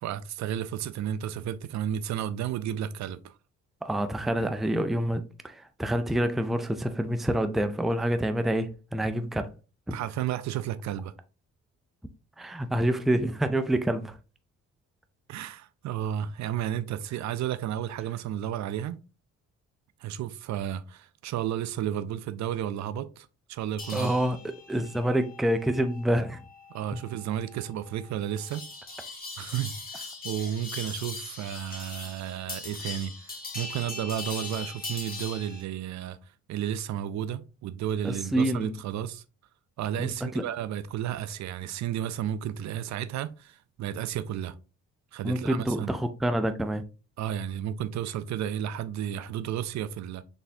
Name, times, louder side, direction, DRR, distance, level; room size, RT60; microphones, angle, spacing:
voice 1, 0.0-3.3 9.9-11.1 15.3-19.0 20.0-24.2 26.7-28.6 29.4-36.2 36.5-39.2 39.8-44.5 45.1-45.9 47.2-50.2, right 10 dB, 65° right, 0.4 m, -32 dB
voice 2, 3.8-9.5 9.9-10.0 12.4-14.2 23.9-24.4 24.7-26.4 38.0-38.7 40.0-40.5 45.2-46.8, right 1 dB, ahead, 0.4 m, -27 dB
sound 1, 23.8-35.6, left 3 dB, 30° left, 1.6 m, -40 dB
4.1 x 3.4 x 2.6 m
cardioid pair, 90°, 30 cm